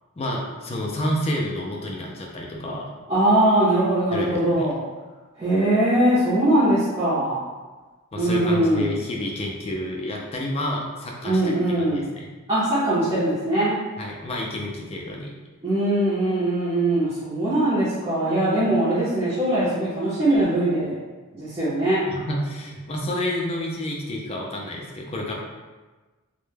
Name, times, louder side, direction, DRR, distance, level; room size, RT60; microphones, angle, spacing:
voice 1, 0.2-2.9 4.1-4.7 8.1-11.5 11.9-12.3 14.0-15.3 22.1-25.3, left 1 dB, 30° left, -1 dB, 0.3 m, -29 dB
voice 2, 3.1-4.8 5.4-7.4 8.2-8.9 11.2-12.1 12.5-13.8 15.6-20.9 21.3-22.0, right 1 dB, 25° right, -12 dB, 0.6 m, -21 dB
2.1 x 2.1 x 3.1 m, 1.3 s
head